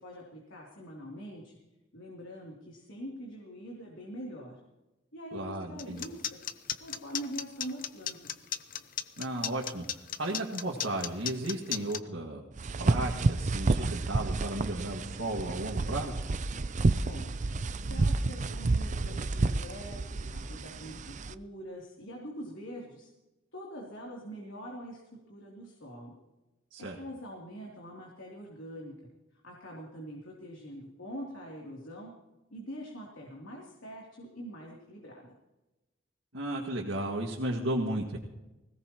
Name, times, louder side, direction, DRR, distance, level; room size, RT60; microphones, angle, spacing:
voice 1, 0.0-1.5 1.9-4.6 5.1-6.2 6.8-8.4 16.9-17.3 17.9-23.1 23.5-25.0 25.3-26.2 26.8-28.9 29.3-32.1 32.5-35.3, equal, 85° left, -3 dB, 3.1 m, -44 dB
voice 2, 5.3-6.1 9.2-12.4 12.8-16.2 26.7-27.0 36.3-38.2, right 1 dB, 85° right, -2 dB, 2.0 m, -34 dB
sound 1, 5.8-12.0, left 10 dB, 45° left, 0.7 m, -35 dB
sound 2, 12.6-21.3, right 3 dB, 40° right, 0.5 m, -30 dB
20.5 x 17.5 x 3.0 m, 1.0 s
head